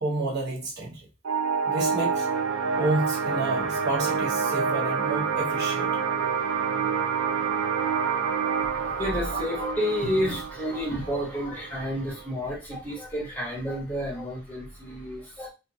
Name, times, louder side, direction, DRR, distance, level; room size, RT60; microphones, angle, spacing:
voice 1, 0.0-1.0 1.7-2.3 2.8-5.9, right 2 dB, 45° right, 1.1 m, -29 dB
sound 1, 1.2-12.3, right 6 dB, 65° right, 0.5 m, -28 dB
voice 2, 8.6-15.5, equal, 10° left, 1.0 m, -30 dB
4.3 x 2.5 x 2.7 m
head